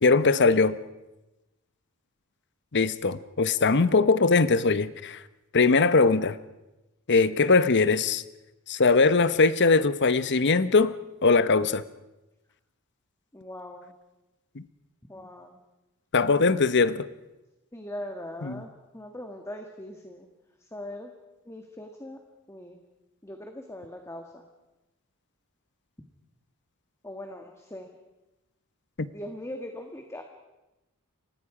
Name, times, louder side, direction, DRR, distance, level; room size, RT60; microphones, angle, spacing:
voice 1, 0.0-0.8 2.7-5.2 5.5-6.4 7.1-8.2 8.7-10.9 11.2-11.8 14.5-14.6 16.1-17.1 18.4-18.5 29.0-29.1, left 4 dB, 55° left, 0.9 m, -21 dB
voice 2, 13.3-13.9 15.1-15.6 17.7-20.3 20.6-21.1 21.4-22.2 22.5-22.8 23.2-24.5 27.0-27.9 29.1-30.2, left 1 dB, 15° left, 1.7 m, -40 dB
30.0 x 24.5 x 5.0 m
head